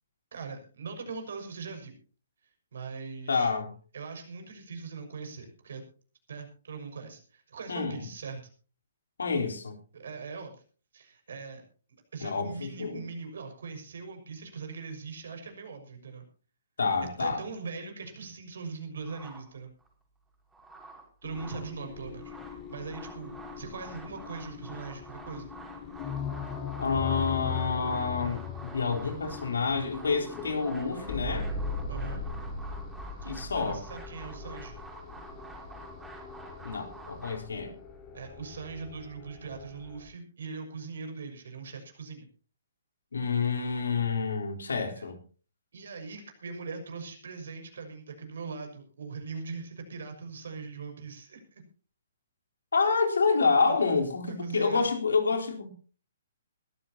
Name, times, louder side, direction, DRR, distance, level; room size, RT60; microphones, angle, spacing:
voice 1, 0.3-2.0 2.7-3.5 3.9-5.8 6.3-8.4 9.9-10.6 10.9-11.6 12.1-16.3 17.2-19.7 21.2-22.3 22.7-25.5 31.9-32.2 33.2-34.8 38.1-42.3 45.0-45.1 45.7-51.7 53.7-53.9 54.3-54.9, right 4 dB, 65° right, 6.0 m, -41 dB
voice 2, 3.3-3.7 7.7-8.0 9.2-9.8 12.2-13.0 16.8-17.4 26.8-31.5 33.2-33.8 36.6-37.8 43.1-45.2 52.7-55.7, left 4 dB, 75° left, 3.9 m, -28 dB
sound 1, 19.0-19.9 20.3-21.7 22.1-37.4, right 3 dB, 5° right, 5.2 m, -48 dB
sound 2, 21.2-40.0, left 4 dB, 25° left, 4.2 m, -39 dB
21.5 x 14.5 x 2.9 m
figure-of-eight pair, 130°, 0 cm